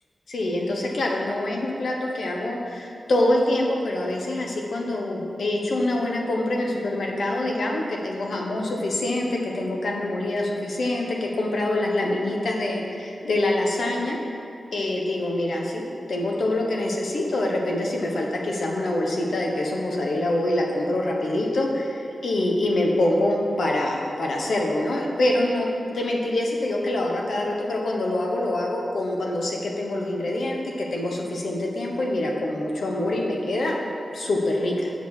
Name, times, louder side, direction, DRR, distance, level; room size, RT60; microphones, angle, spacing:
voice 1, 0.3-14.2 14.7-33.7 34.1-34.9, left 1 dB, 65° left, -1 dB, 1.2 m, -25 dB
8.0 x 6.2 x 4.9 m, 2.8 s
wide cardioid pair, 165°, 0 cm